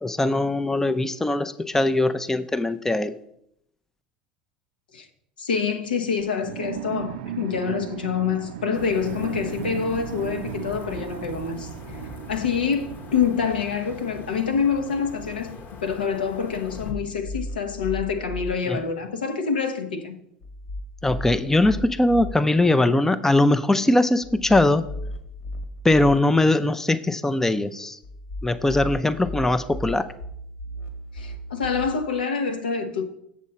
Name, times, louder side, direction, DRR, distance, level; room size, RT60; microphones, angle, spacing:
voice 1, 0.0-3.1 18.7-18.8 21.0-24.8 25.8-28.0 28.4-30.1, left 2 dB, 10° left, 0.5 m, -21 dB
voice 2, 5.4-11.7 12.3-15.6 15.8-20.2 31.1-33.0, left 6 dB, 80° left, 0.9 m, -26 dB
sound 1, 6.4-14.6, right 11 dB, 65° right, 0.4 m, -36 dB
sound 2, 8.7-16.9, left 3 dB, 40° left, 1.0 m, -41 dB
sound 3, 16.6-18.5 20.4-22.3 24.2-26.1 28.0-31.8, left 1 dB, 60° left, 1.4 m, -35 dB
7.3 x 7.3 x 4.2 m
figure-of-eight pair, 75°, 5 cm